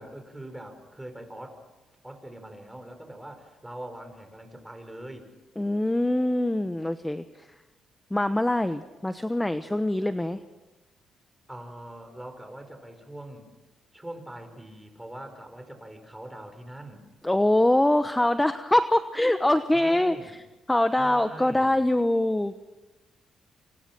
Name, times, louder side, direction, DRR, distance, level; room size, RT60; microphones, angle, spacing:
voice 1, 0.0-1.6 1.9-5.3 11.5-13.5 13.9-17.0 19.7-20.3 21.0-21.8, right 1 dB, 10° right, 7 dB, 5.3 m, -42 dB
voice 2, 5.6-7.5 8.1-10.4 17.2-20.4 20.7-22.5, left 1 dB, 10° left, 10 dB, 1.1 m, -24 dB
27.0 x 26.0 x 6.2 m, 1.2 s
cardioid pair, 75°, 0 cm